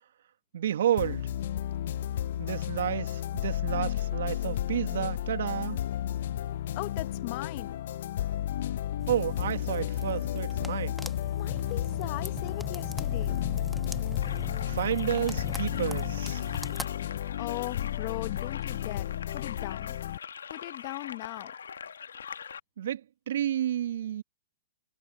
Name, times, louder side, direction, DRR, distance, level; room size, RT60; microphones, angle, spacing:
voice 1, 0.5-1.3 2.4-5.8 9.1-11.0 14.6-16.4 22.8-23.0 23.3-24.2, right 10 dB, 70° right, 1.8 m, -31 dB
sound 1, 1.0-20.2, left 12 dB, 65° left, 0.6 m, -32 dB
voice 2, 6.7-7.8 11.4-13.3 16.9-17.1 17.4-20.0 20.5-21.5, left 26 dB, 45° left, 1.0 m, -39 dB
sound 2, 9.0-16.9, equal, ahead, 1.6 m, -42 dB
sound 3, 14.2-22.6, left 7 dB, 85° left, 1.6 m, -43 dB
hypercardioid pair, 120°, 0 cm